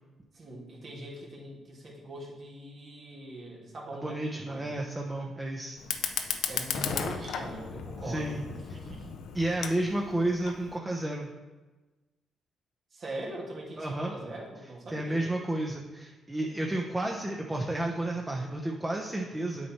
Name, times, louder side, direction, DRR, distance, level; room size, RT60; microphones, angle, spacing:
voice 1, 0.3-4.2 4.5-4.8 6.5-8.4 8.7-9.1 12.9-15.3, right 1 dB, 55° right, -4 dB, 2.5 m, -42 dB
voice 2, 3.9-5.8 8.0-8.4 9.3-11.3 13.8-14.1 14.9-19.7, right 1 dB, 20° right, 0 dB, 1.0 m, -31 dB
Fire, 5.8-10.8, left 7 dB, 75° left, 0.6 m, -35 dB
8.3 x 4.5 x 4.5 m, 1.2 s
supercardioid pair, 55°, 0 cm